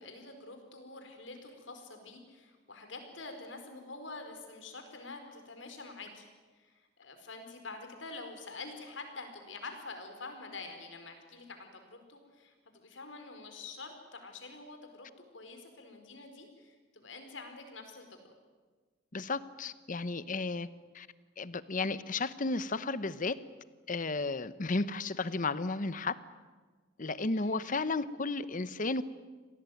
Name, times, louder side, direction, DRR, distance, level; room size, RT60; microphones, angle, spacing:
voice 1, 0.0-6.3 6.5-15.1 15.3-18.3 27.3-27.7, left 3 dB, 80° left, 6 dB, 4.6 m, -47 dB
voice 2, 19.1-20.7 20.9-21.1 21.4-23.4 23.9-26.2 27.0-29.0, left 3 dB, 45° left, 15 dB, 0.9 m, -33 dB
26.5 x 18.0 x 9.3 m, 1.4 s
head